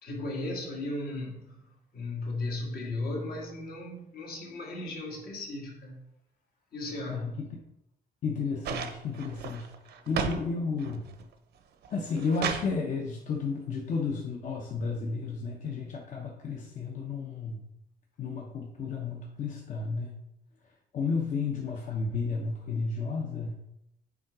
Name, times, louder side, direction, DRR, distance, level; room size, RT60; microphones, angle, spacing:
voice 1, 0.0-1.4 1.9-6.0 6.7-7.3, left 2 dB, 65° left, 1.7 m, -35 dB
voice 2, 7.1-7.6 8.2-9.7 10.1-11.1 11.9-17.6 18.2-20.1 20.9-23.6, left 4 dB, 50° left, 0.8 m, -32 dB
sound 1, 8.6-10.4 10.8-11.3 11.8-12.7 13.9-14.0, right 7 dB, 75° right, 0.7 m, -34 dB
7.1 x 3.9 x 4.8 m
cardioid pair, 165°, 17 cm